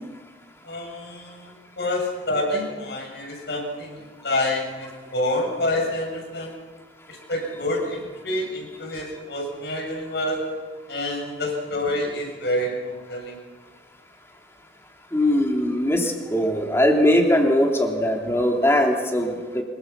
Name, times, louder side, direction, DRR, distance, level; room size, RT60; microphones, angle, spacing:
voice 1, 0.6-6.5 7.1-10.5 10.9-13.4, left 1 dB, 65° left, 1 dB, 7.6 m, -28 dB
voice 2, 15.1-19.6, left 1 dB, 15° left, 1 dB, 3.4 m, -20 dB
25.5 x 22.5 x 5.9 m, 1.5 s
head